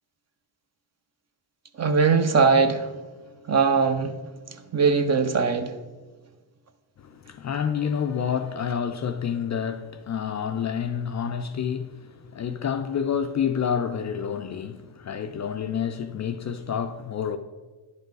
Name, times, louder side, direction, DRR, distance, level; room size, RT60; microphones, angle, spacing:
voice 1, 1.8-2.9 3.5-4.2 4.7-5.8, right 5 dB, 35° right, 0.7 m, -20 dB
voice 2, 7.0-17.4, left 7 dB, 40° left, 0.4 m, -28 dB
10.5 x 5.4 x 3.9 m
cardioid pair, 105°, 47 cm